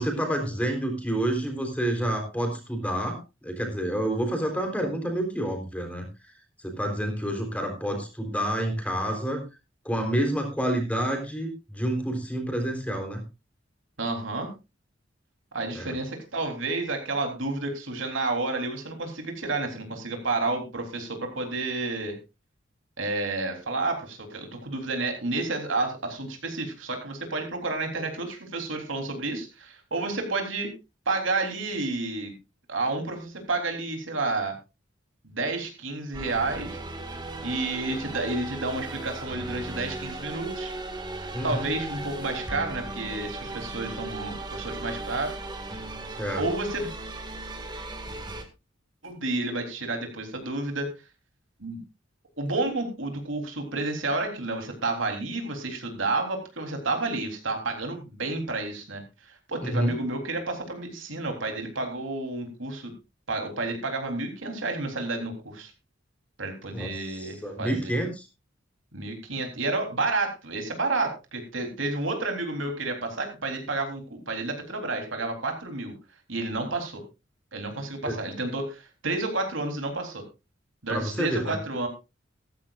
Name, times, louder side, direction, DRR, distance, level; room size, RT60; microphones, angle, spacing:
voice 1, 0.0-6.1 6.6-9.4 9.8-13.2 15.7-16.0 41.3-41.7 46.2-46.4 59.6-60.0 66.7-68.3 78.0-78.2 80.9-81.6, right 1 dB, 5° left, 3 dB, 3.7 m, -29 dB
voice 2, 14.0-14.5 15.5-22.2 23.0-30.7 31.1-32.3 32.7-34.5 35.2-36.8 37.4-40.7 41.4-45.4 46.3-46.9 49.0-50.9 51.6-51.8 52.4-62.9 63.3-65.7 66.4-67.9 68.9-75.9 76.3-77.0 77.5-80.2 80.8-81.9, right 2 dB, 75° right, 4 dB, 3.5 m, -30 dB
sound 1, 36.1-48.4, right 2 dB, 20° right, 1.9 m, -37 dB
15.0 x 14.5 x 2.5 m, 0.27 s
head